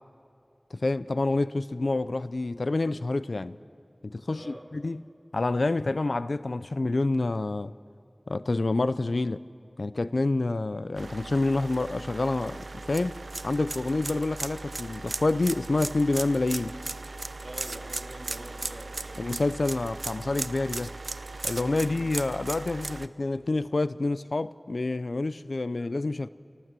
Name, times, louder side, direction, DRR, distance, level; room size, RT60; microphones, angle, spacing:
voice 1, 0.7-3.6 4.0-5.0 5.3-7.7 8.3-9.4 9.8-13.2 13.4-16.7 19.2-20.9 21.4-26.3, left 2 dB, 80° left, 0.5 m, -28 dB
voice 2, 4.3-4.7 17.4-19.4 21.7-22.0, right 1 dB, 35° right, 3.7 m, -45 dB
sound 1, 10.9-23.1, right 3 dB, 85° right, 0.5 m, -37 dB
28.5 x 18.5 x 7.6 m
wide cardioid pair, 40°, 0 cm